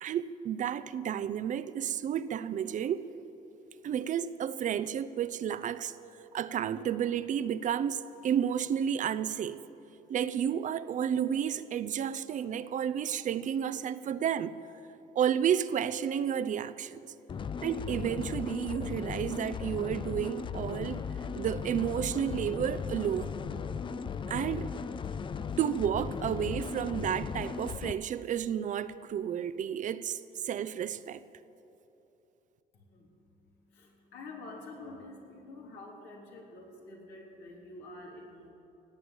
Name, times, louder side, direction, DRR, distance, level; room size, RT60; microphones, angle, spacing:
voice 1, 0.0-3.1 3.8-5.9 6.3-9.6 10.1-14.5 15.1-17.0 17.6-21.0 21.4-23.3 24.3-24.7 25.6-31.2, right 9 dB, 50° right, 0.6 m, -31 dB
sound 1, 17.3-27.9, left 6 dB, 30° left, 0.5 m, -37 dB
voice 2, 32.7-38.5, left 2 dB, 80° left, 3.5 m, -48 dB
17.5 x 8.7 x 8.9 m
cardioid pair, 110°, 17 cm